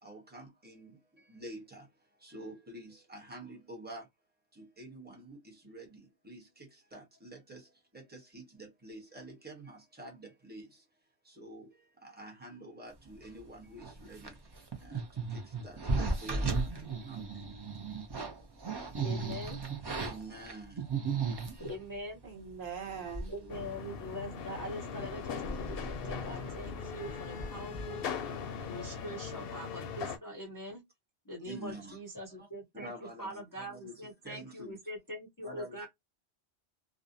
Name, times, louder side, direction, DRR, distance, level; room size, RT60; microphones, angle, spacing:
voice 1, 0.0-4.1 4.5-19.2 20.0-21.7 28.9-29.1 31.4-32.0 32.3-32.5 32.7-34.9 35.4-35.9, right 1 dB, 10° right, 0.8 m, -49 dB
sound 1, 13.8-21.8 22.5-22.6 22.8-23.5 23.7-23.8 24.3-24.6 25.0-28.5 28.7-29.0, right 4 dB, 35° right, 0.4 m, -36 dB
voice 2, 19.0-19.6 21.7-22.2 23.3-28.0 28.6-30.8 31.3-32.9 33.2-35.9, equal, 25° left, 0.5 m, -43 dB
voice 3, 22.2-23.3, right 7 dB, 55° right, 0.9 m, -41 dB
sound 2, 23.5-30.2, left 6 dB, 65° left, 0.7 m, -40 dB
2.5 x 2.0 x 2.6 m
omnidirectional pair, 1.1 m